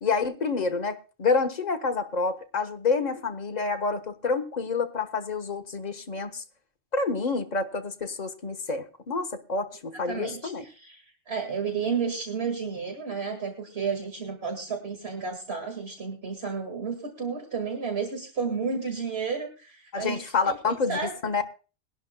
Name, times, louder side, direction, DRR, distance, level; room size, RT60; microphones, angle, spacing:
voice 1, 0.0-6.4 6.9-10.6 19.9-21.5, left 4 dB, 40° left, 1.1 m, -28 dB
voice 2, 10.1-21.1, right 5 dB, 65° right, 2.2 m, -32 dB
21.5 x 11.5 x 2.2 m
omnidirectional pair, 1.2 m